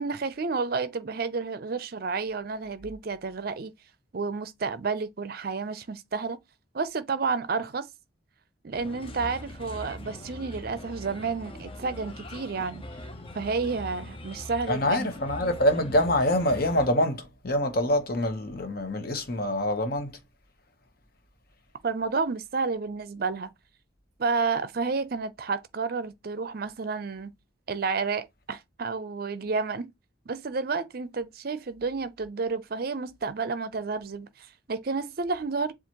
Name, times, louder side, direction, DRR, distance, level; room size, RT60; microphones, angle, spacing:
voice 1, 0.0-3.7 4.1-6.4 6.7-7.9 8.6-12.8 13.3-15.1 21.8-23.5 24.2-27.3 27.7-29.9 30.3-35.7, right 4 dB, 50° right, 0.5 m, -30 dB
Bird, 8.7-16.9, left 1 dB, 30° left, 0.6 m, -42 dB
voice 2, 14.7-20.2, left 1 dB, 50° left, 1.0 m, -25 dB
7.2 x 2.4 x 2.9 m
head